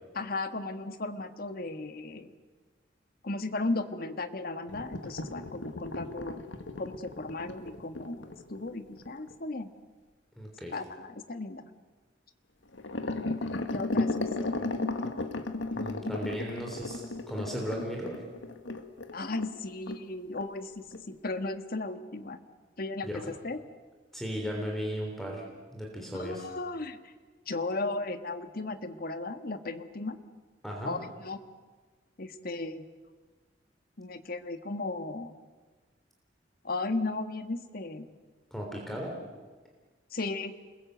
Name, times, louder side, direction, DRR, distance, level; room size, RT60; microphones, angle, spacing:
voice 1, 0.1-2.3 3.2-6.4 6.8-9.7 10.7-11.6 13.7-14.6 19.1-22.4 22.8-23.1 23.4-23.6 26.1-27.1 27.5-30.2 30.8-31.4 32.2-32.9 34.0-35.3 36.6-38.1 40.1-40.5, left 2 dB, 55° left, 9 dB, 1.6 m, -35 dB
sound 1, 4.7-9.3 12.7-19.6 19.9-20.0 20.4-20.5 20.9-21.0, left 2 dB, 80° left, 1.6 m, -35 dB
voice 2, 10.4-10.8 14.4-14.7 15.7-18.2 23.0-23.3 24.1-25.4 25.7-26.5 30.6-31.0 38.5-39.1, equal, ahead, 0 dB, 3.5 m, -36 dB
28.5 x 21.5 x 8.0 m, 1.4 s
head